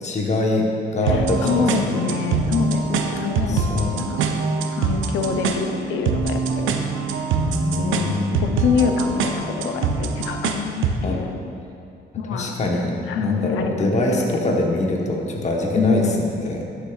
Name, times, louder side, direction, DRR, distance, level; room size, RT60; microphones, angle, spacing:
voice 1, 0.0-1.9 3.5-4.0 7.5-8.6 11.0-11.2 12.3-16.6, left 2 dB, 35° left, 0 dB, 1.1 m, -24 dB
voice 2, 1.0-3.6 3.9-4.2 4.7-6.8 7.8-11.3 12.2-12.6 13.1-14.5 15.7-16.2, left 6 dB, 80° left, 5 dB, 0.6 m, -26 dB
sound 1, 1.1-11.1, right 5 dB, 80° right, 0.6 m, -24 dB
11.0 x 6.7 x 2.3 m, 2.5 s
cardioid pair, 90°, 20 cm